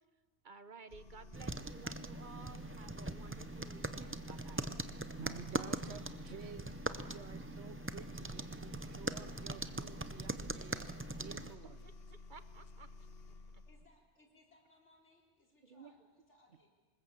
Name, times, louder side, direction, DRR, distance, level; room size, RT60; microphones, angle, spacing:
voice 1, 0.4-4.7 11.8-12.9 13.5-13.6 15.6-15.9, right 5 dB, 50° right, 12 dB, 0.9 m, -55 dB
sound 1, 0.9-13.9, left 3 dB, 60° left, 1.3 m, -53 dB
sound 2, 1.3-11.6, right 2 dB, 15° right, 0.5 m, -42 dB
voice 2, 5.2-11.9 16.5-16.6, right 6 dB, 70° right, 14 dB, 1.1 m, -52 dB
voice 3, 13.7-16.7, left 2 dB, 85° left, 0 dB, 4.3 m, -67 dB
25.5 x 20.5 x 7.3 m, 1.4 s
omnidirectional pair, 1.2 m